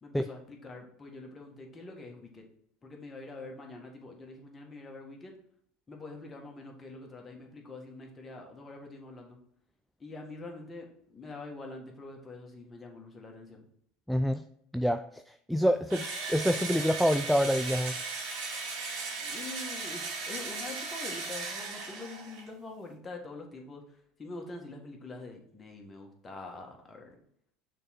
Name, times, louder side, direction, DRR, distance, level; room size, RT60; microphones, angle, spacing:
voice 1, 0.0-2.5 2.8-5.3 5.9-9.4 10.0-10.9 11.1-13.6 19.2-23.8 24.2-27.1, left 2 dB, 25° left, 1 dB, 1.6 m, -45 dB
voice 2, 14.1-14.4 14.7-18.0, equal, ahead, 8 dB, 0.3 m, -27 dB
Engine / Drill, 15.9-22.5, right 3 dB, 60° right, 2.1 m, -37 dB
6.5 x 3.7 x 4.4 m, 0.68 s
hypercardioid pair, 80°, 0 cm